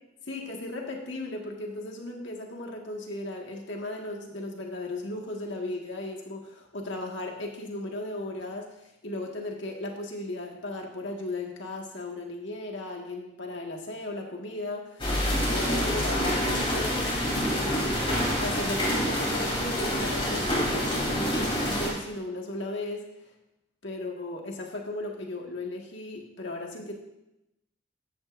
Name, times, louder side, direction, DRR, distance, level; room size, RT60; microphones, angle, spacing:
voice 1, 0.3-15.2 15.5-23.0 23.8-26.9, left 2 dB, 60° left, 0 dB, 1.8 m, -36 dB
sound 1, 15.0-21.9, equal, 25° left, 3.3 m, -27 dB
14.0 x 10.5 x 2.6 m, 0.88 s
head